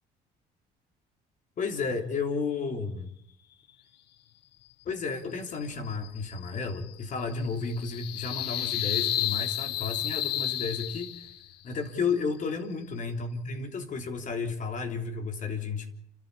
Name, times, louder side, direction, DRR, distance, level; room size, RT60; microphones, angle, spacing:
voice 1, 1.6-3.1 4.9-11.3 11.6-15.9, left 4 dB, 50° left, 5 dB, 3.5 m, -32 dB
sound 1, 5.6-11.5, left 12 dB, 75° left, 1.3 m, -33 dB
28.5 x 13.0 x 8.5 m, 0.72 s
cardioid pair, 110°, 17 cm